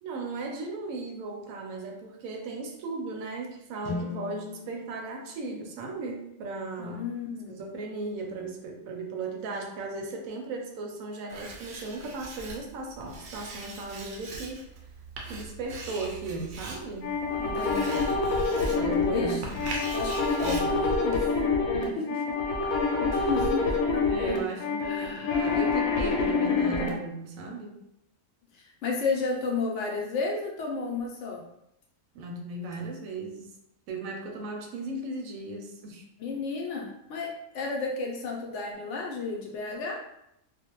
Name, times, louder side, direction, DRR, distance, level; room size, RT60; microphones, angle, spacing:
voice 1, 0.0-7.1 7.6-14.7 15.3-17.1 18.6-19.7 20.4-20.7 21.7-21.9 23.1-23.4 24.1-27.7 32.1-33.5 33.9-36.1, right 3 dB, 85° right, 2 dB, 1.0 m, -36 dB
sound 1, 3.8-7.9, left 3 dB, 35° left, 0.6 m, -41 dB
voice 2, 6.8-7.6 17.4-18.1 19.1-19.6 19.9-21.3 22.0-22.1 23.0-24.0 24.8-25.6 28.5-31.4 36.2-40.0, left 4 dB, 70° left, -1 dB, 0.9 m, -32 dB
Writing, 11.3-21.5, right 2 dB, 65° right, 0.6 m, -41 dB
sound 2, 17.0-26.9, left 4 dB, 85° left, 1.1 m, -26 dB
2.5 x 2.1 x 2.9 m, 0.79 s
omnidirectional pair, 1.4 m